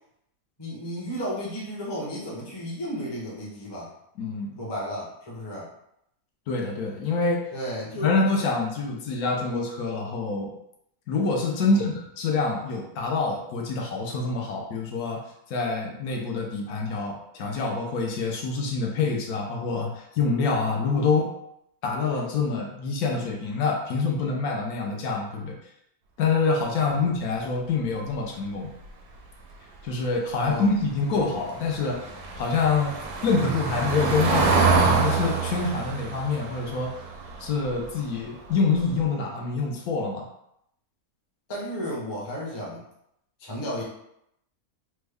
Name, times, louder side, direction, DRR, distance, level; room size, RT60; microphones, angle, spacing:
voice 1, 0.6-3.9 4.6-5.7 7.5-8.1 11.6-11.9 26.9-27.1 30.4-30.7 41.5-42.8 43.4-43.8, equal, 25° left, -5 dB, 0.6 m, -33 dB
voice 2, 4.2-4.6 6.5-7.4 8.0-10.5 11.1-15.2 15.5-21.3 21.8-25.5 26.2-28.7 29.8-32.1 32.4-36.9 37.4-40.3, left 4 dB, 75° left, 0 dB, 1.1 m, -26 dB
Car passing by / Engine, 31.2-38.2 38.5-38.7 39.0-39.1, right 4 dB, 85° right, 1.1 m, -26 dB
3.4 x 2.1 x 3.4 m, 0.76 s
omnidirectional pair, 1.6 m